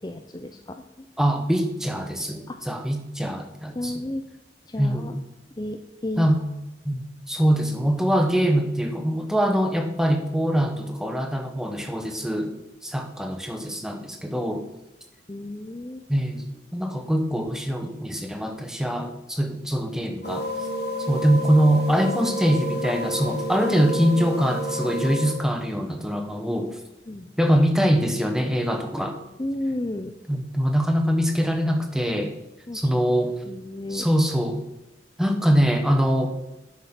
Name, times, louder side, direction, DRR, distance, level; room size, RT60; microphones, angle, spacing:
voice 1, 0.0-1.1 2.5-2.6 3.8-4.2 4.7-5.1 5.6-6.3 15.3-16.0 27.1-27.3 29.4-30.1 32.7-32.9 33.4-34.1, left 1 dB, 20° left, 6 dB, 0.5 m, -32 dB
voice 2, 1.2-3.9 4.8-5.2 6.2-6.4 6.8-7.0 7.3-12.5 12.8-14.6 16.1-16.4 16.7-20.5 21.1-26.8 27.4-29.2 30.3-32.3 32.7-33.3 33.9-34.6 35.2-36.3, equal, 5° right, 5 dB, 1.0 m, -23 dB
sound 1, 20.2-25.3, left 1 dB, 60° left, 1.3 m, -30 dB
10.0 x 6.6 x 5.9 m, 0.95 s
head